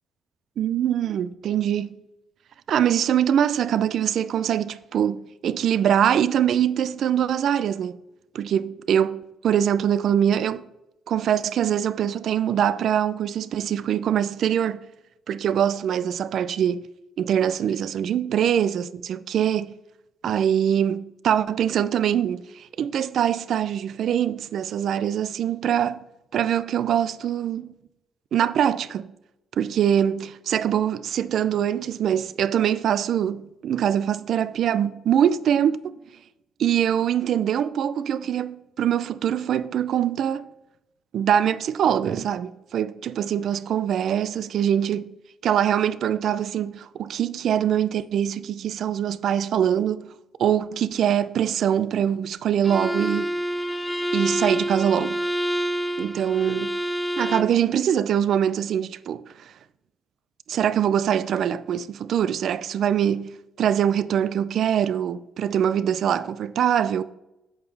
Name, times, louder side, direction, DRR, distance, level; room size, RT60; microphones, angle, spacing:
voice 1, 0.6-1.9 2.7-8.0 8.3-10.7 11.1-14.8 15.3-16.9 17.2-19.7 20.2-26.0 26.3-27.7 28.3-29.1 29.5-36.0 36.6-40.4 41.1-45.1 45.4-50.1 50.4-53.3 54.1-55.2 56.0-56.8 57.2-59.5 60.5-67.0, right 9 dB, 60° right, 0.4 m, -23 dB
Bowed string instrument, 52.6-57.6, equal, 5° left, 0.5 m, -27 dB
8.4 x 7.1 x 3.3 m
cardioid pair, 135°, 0 cm